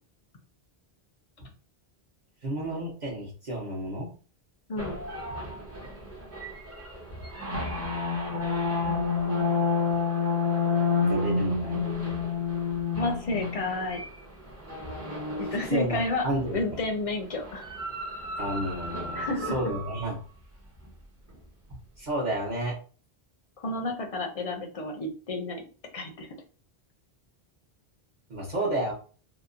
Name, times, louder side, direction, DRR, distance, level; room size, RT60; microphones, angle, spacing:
voice 1, 2.4-4.1 11.0-11.8 15.4-16.8 18.4-20.2 22.0-22.7 28.3-28.9, right 1 dB, 50° right, -5 dB, 0.9 m, -31 dB
sound 1, 4.8-16.6 17.4-20.1, left 4 dB, 20° right, 0.5 m, -30 dB
voice 2, 13.0-14.0 15.4-16.2 16.5-17.6 19.1-19.5 23.6-25.6 25.9-26.3, left 2 dB, 45° left, 3 dB, 0.5 m, -31 dB
2.8 x 2.0 x 2.5 m, 0.37 s
omnidirectional pair, 1.1 m